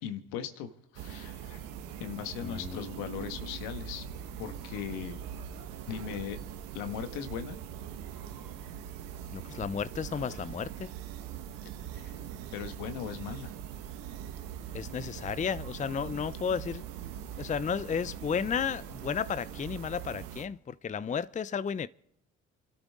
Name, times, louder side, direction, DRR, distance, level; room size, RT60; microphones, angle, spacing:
voice 1, 0.0-1.6 2.0-4.0 4.4-5.2 5.8-6.4 6.7-7.6 11.9-12.2 12.5-13.5, left 9 dB, 80° left, 1.6 m, -38 dB
sound 1, 0.9-20.4, right 9 dB, 75° right, 1.5 m, -42 dB
voice 2, 2.4-2.8 9.3-10.9 14.7-16.8 17.4-21.9, left 7 dB, 20° left, 0.5 m, -33 dB
28.5 x 13.0 x 3.7 m
hypercardioid pair, 55°, 34 cm